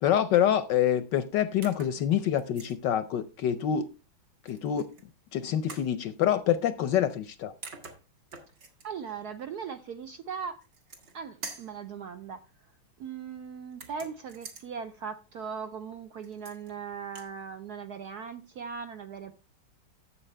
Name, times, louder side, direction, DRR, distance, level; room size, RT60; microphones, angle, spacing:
voice 1, 0.0-3.9 4.4-4.9 5.3-7.5, left 10 dB, 70° left, 1.1 m, -26 dB
sound 1, 1.6-2.0 2.4-2.8 4.5-5.0 5.7-5.9 7.3-7.4 7.6-8.9 10.6-11.2 11.4-11.8 13.7-14.7 16.2-16.7 17.0-17.3, right 4 dB, 55° right, 2.4 m, -45 dB
voice 2, 8.8-10.6 11.1-12.4 13.0-19.3, right 6 dB, 70° right, 0.9 m, -39 dB
12.5 x 7.5 x 3.3 m
omnidirectional pair, 2.3 m